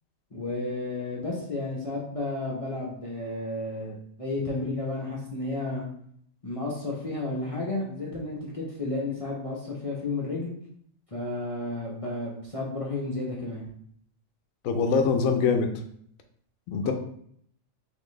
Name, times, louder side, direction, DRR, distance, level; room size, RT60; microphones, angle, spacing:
voice 1, 0.3-5.9 6.4-10.5 11.1-13.6 16.8-16.9, left 2 dB, 35° left, -4 dB, 0.6 m, -32 dB
voice 2, 14.6-15.7 16.7-16.9, left 5 dB, 85° left, 6 dB, 1.0 m, -23 dB
4.2 x 3.2 x 3.1 m, 0.65 s
omnidirectional pair, 1.4 m